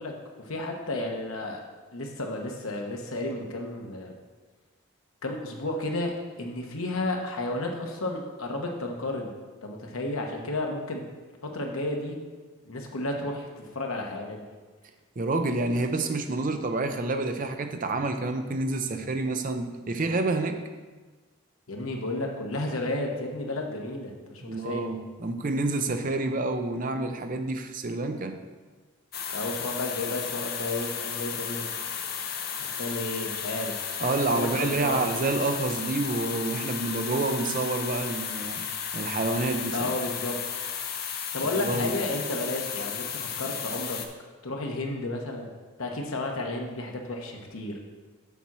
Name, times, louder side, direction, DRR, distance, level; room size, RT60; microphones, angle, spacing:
voice 1, 0.0-1.6 1.9-4.1 5.2-9.3 9.6-11.1 11.4-12.2 12.7-14.4 21.7-24.9 29.3-31.6 32.6-35.0 39.7-40.4 41.3-44.0 44.4-45.5 45.8-47.8, left 2 dB, 75° left, 2 dB, 1.1 m, -32 dB
voice 2, 15.2-20.6 24.4-28.4 34.0-38.6 38.9-39.9 41.4-42.0, right 2 dB, 40° right, 7 dB, 0.5 m, -28 dB
sound 1, 29.1-44.1, left 7 dB, 45° left, 0.6 m, -34 dB
7.2 x 4.1 x 6.1 m, 1.3 s
head